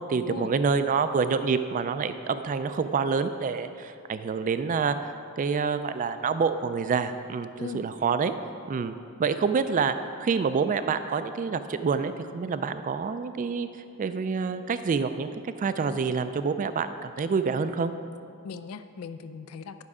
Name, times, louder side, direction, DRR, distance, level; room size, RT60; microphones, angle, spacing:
voice 1, 0.0-7.5 7.7-8.3 8.7-8.9 9.2-13.7 14.0-15.3 15.6-17.9, right 5 dB, 35° right, 11 dB, 0.3 m, -27 dB
voice 2, 7.5-7.9 18.4-19.8, left 5 dB, 75° left, 10 dB, 0.4 m, -38 dB
11.0 x 6.1 x 4.9 m, 2.4 s
head